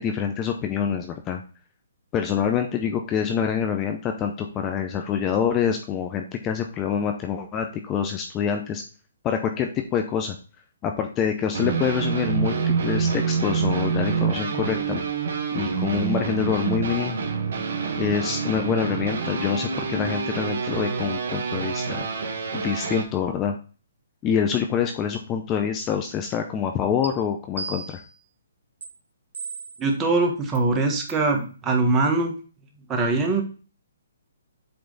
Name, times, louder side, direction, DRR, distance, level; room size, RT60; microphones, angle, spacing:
voice 1, 0.0-1.4 2.1-8.8 9.2-10.3 10.8-15.0 15.5-17.2 18.0-22.1 22.5-23.6 24.2-28.0, left 7 dB, 20° left, 5 dB, 0.6 m, -26 dB
sound 1, 11.5-23.0, right 5 dB, 65° right, 1.5 m, -27 dB
sound 2, 27.0-27.1 27.6-28.2 28.8-28.9 29.3-29.9 30.5-30.6 31.1-31.3, right 4 dB, 85° right, 1.6 m, -35 dB
voice 2, 29.8-32.3 32.9-33.4, right 3 dB, 15° right, 2 dB, 1.3 m, -22 dB
7.9 x 3.3 x 3.9 m, 0.37 s
hypercardioid pair, 150°, 0 cm